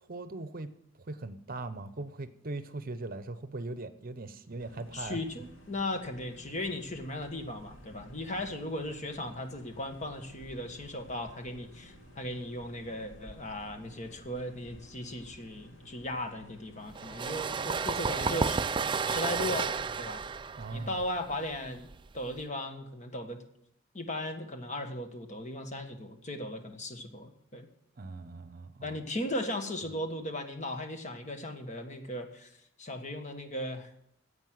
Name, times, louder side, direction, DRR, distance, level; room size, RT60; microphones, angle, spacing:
voice 1, 0.1-0.7 1.1-5.2 20.6-21.0 28.0-29.0 29.8-29.9, right 2 dB, 45° right, 12 dB, 0.8 m, -40 dB
sound 1, 4.6-19.8, equal, 80° left, 2.5 m, -53 dB
voice 2, 4.9-18.6 19.0-19.7 20.0-20.2 20.7-21.9 22.1-23.4 23.9-27.7 28.8-32.5 32.8-33.9, left 1 dB, 40° left, 5 dB, 1.5 m, -37 dB
sound 2, 16.9-22.4, right 5 dB, 25° right, 0.4 m, -32 dB
10.5 x 8.1 x 7.8 m, 0.76 s
head